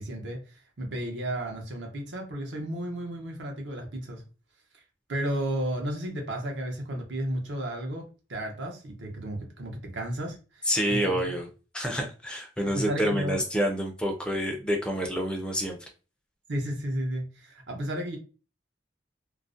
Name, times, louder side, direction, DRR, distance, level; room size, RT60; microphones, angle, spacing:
voice 1, 0.0-4.2 4.7-4.8 5.1-11.2 12.7-13.4 16.5-18.2, right 1 dB, 70° right, 1 dB, 0.7 m, -33 dB
voice 2, 10.7-11.5 11.7-15.8, equal, 5° left, 2 dB, 0.3 m, -28 dB
2.4 x 2.0 x 2.5 m, 0.34 s
head